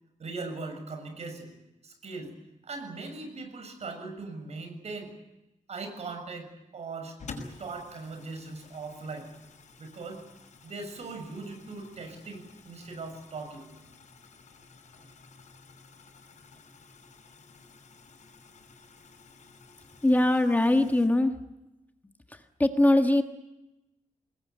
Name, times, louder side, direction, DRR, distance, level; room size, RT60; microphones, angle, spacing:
voice 1, 0.2-1.5 1.8-2.3 2.6-5.1 5.7-7.2 7.6-9.3 9.8-10.2 10.6-13.7 14.9-15.1, right 3 dB, 55° right, 6 dB, 6.9 m, -39 dB
sound 1, 7.2-21.1, left 4 dB, 65° left, 5.9 m, -51 dB
voice 2, 20.0-21.3 22.3-23.2, left 1 dB, 15° left, 6 dB, 1.4 m, -22 dB
25.0 x 20.5 x 9.3 m, 0.94 s
wide cardioid pair, 165°, 13 cm